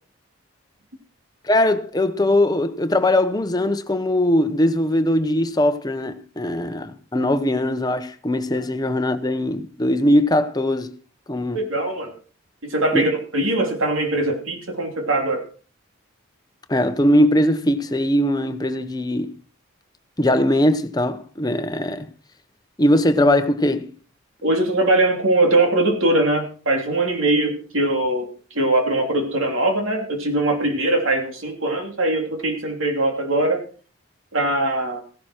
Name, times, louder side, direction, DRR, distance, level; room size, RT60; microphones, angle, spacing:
voice 1, 1.4-10.9 11.3-11.6 12.9-13.1 16.7-19.4 20.2-22.1 22.8-23.9, left 1 dB, 20° left, 0.8 m, -20 dB
voice 2, 11.5-12.1 12.6-15.4 24.4-28.3 28.5-33.6 34.3-35.0, right 2 dB, 75° right, 3.1 m, -21 dB
15.5 x 11.0 x 4.5 m
head